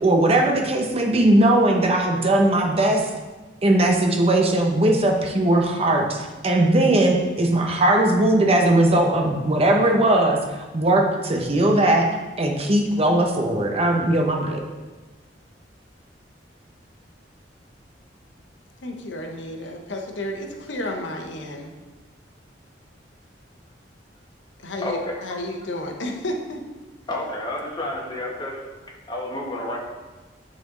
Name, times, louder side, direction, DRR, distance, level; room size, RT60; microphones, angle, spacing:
voice 1, 0.0-3.1 3.6-10.4 10.7-12.1 12.4-14.6, right 1 dB, 35° right, 2 dB, 0.8 m, -19 dB
voice 2, 18.8-21.7 24.6-26.6, left 1 dB, 85° left, 2 dB, 0.9 m, -32 dB
voice 3, 24.8-25.2 27.1-28.6 29.1-29.8, left 1 dB, 25° left, -2 dB, 1.3 m, -30 dB
10.0 x 4.2 x 3.8 m, 1.2 s
head